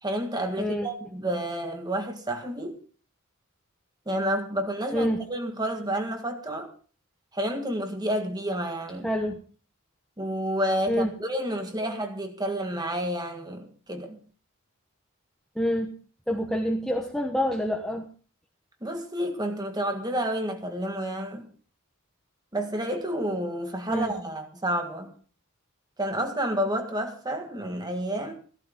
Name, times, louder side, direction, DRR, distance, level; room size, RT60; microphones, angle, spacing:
voice 1, 0.0-2.8 4.0-6.7 7.3-9.1 10.2-14.2 18.8-21.5 22.5-25.1 26.0-28.3, right 1 dB, 20° right, 1.8 m, -30 dB
voice 2, 0.6-0.9 4.9-5.2 9.0-9.4 10.9-11.1 11.8-11.9 15.6-15.9 16.3-18.0 23.9-24.1, equal, ahead, 1.1 m, -27 dB
15.0 x 13.5 x 3.7 m
head